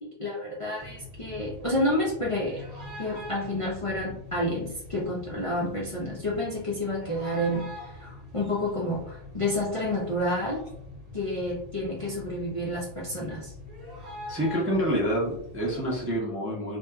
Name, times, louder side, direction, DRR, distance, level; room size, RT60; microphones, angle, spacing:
voice 1, 0.0-2.7 3.0-10.6 11.1-13.5, left 1 dB, 45° left, -5 dB, 0.4 m, -30 dB
sound 1, 0.8-16.2, left 2 dB, 55° right, 1.0 m, -44 dB
voice 2, 14.3-16.8, equal, 20° right, -5 dB, 0.4 m, -27 dB
2.9 x 2.2 x 2.2 m, 0.71 s
omnidirectional pair, 1.2 m